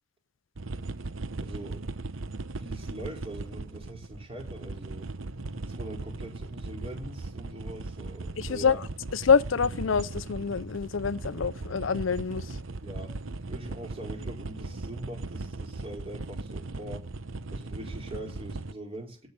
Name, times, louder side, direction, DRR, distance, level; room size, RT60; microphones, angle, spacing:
sound 1, 0.6-18.7, right 3 dB, 85° right, 0.9 m, -38 dB
voice 1, 1.4-1.8 2.6-5.1 5.6-8.8 12.8-13.1 13.5-17.1 17.5-19.3, right 1 dB, 30° right, 4.1 m, -42 dB
voice 2, 8.4-8.8 9.1-12.6, left 6 dB, 75° left, 0.6 m, -26 dB
17.5 x 6.6 x 8.8 m
head